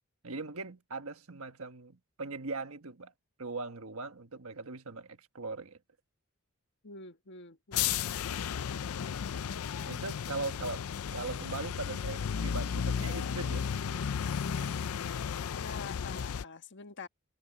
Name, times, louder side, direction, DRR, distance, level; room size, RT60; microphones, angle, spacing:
voice 1, 0.2-3.1 3.4-5.8 9.9-14.0 14.5-14.7, right 3 dB, 65° right, 1.5 m, -40 dB
voice 2, 6.8-8.3 15.5-17.1, left 4 dB, 55° left, 1.4 m, -47 dB
sound 1, 7.7-16.4, left 7 dB, 70° left, 0.4 m, -34 dB
head